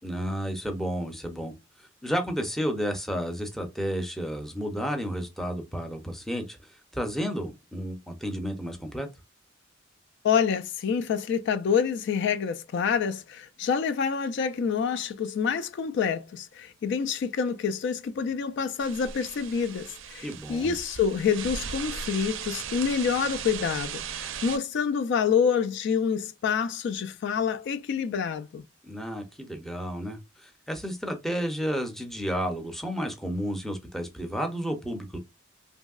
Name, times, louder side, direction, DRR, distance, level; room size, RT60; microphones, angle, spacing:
voice 1, 0.0-1.6 2.0-6.6 6.9-9.1 20.2-20.8 28.8-35.2, equal, ahead, 0.5 m, -32 dB
voice 2, 10.2-28.6, left 6 dB, 60° left, 0.3 m, -27 dB
sound 1, 18.8-24.6, right 7 dB, 70° right, 0.4 m, -37 dB
3.0 x 2.7 x 2.3 m
head